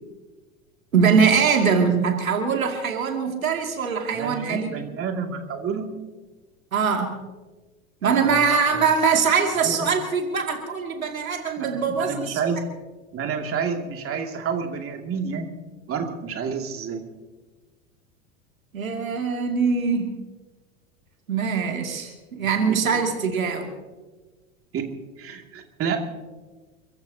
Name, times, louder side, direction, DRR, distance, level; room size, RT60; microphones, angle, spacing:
voice 1, 0.9-4.8 6.7-7.2 8.0-12.4 18.7-20.2 21.3-23.7, right 5 dB, 90° right, 2 dB, 2.6 m, -22 dB
voice 2, 4.1-5.9 8.0-8.5 9.6-9.9 11.6-12.6 13.1-15.5 15.9-17.1 24.7-24.9 25.2-26.0, right 6 dB, 35° right, 3 dB, 2.5 m, -29 dB
29.5 x 15.0 x 2.9 m, 1.3 s
hypercardioid pair, 90°, 40 cm